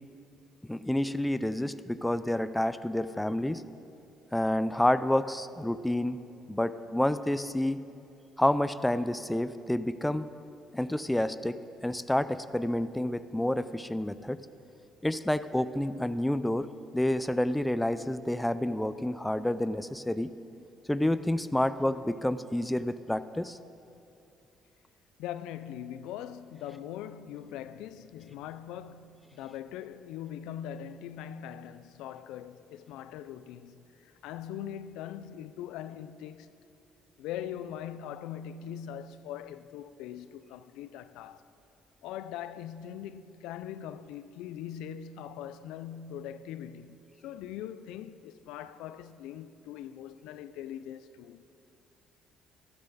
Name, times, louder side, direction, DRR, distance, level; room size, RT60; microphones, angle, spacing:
voice 1, 0.7-3.6 4.3-6.2 6.5-7.8 8.4-10.3 10.7-14.4 15.0-16.7 16.9-20.3 20.9-23.6, left 1 dB, 5° left, 0.4 m, -29 dB
voice 2, 25.2-36.6 37.2-41.4 42.0-51.4, left 10 dB, 85° left, 0.4 m, -41 dB
12.5 x 12.5 x 4.1 m
supercardioid pair, 80°, 0 cm